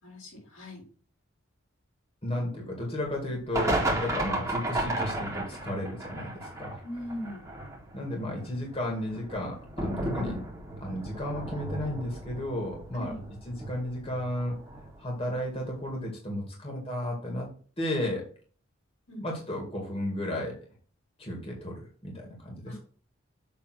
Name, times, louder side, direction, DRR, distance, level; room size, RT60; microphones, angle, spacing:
voice 1, 0.0-0.8 6.8-7.5 12.9-13.3 19.1-19.2 22.7-22.8, equal, 80° left, -2 dB, 4.2 m, -40 dB
voice 2, 2.2-6.8 7.9-10.4 10.8-13.1 13.5-14.6 15.0-17.5 17.8-18.3 19.2-20.6 21.2-21.7 22.0-22.9, left 1 dB, 30° left, 0 dB, 2.0 m, -33 dB
sound 1, 3.5-15.0 15.3-15.4 15.8-15.9, right 1 dB, 15° right, 2.0 m, -34 dB
7.5 x 3.4 x 6.0 m, 0.43 s
head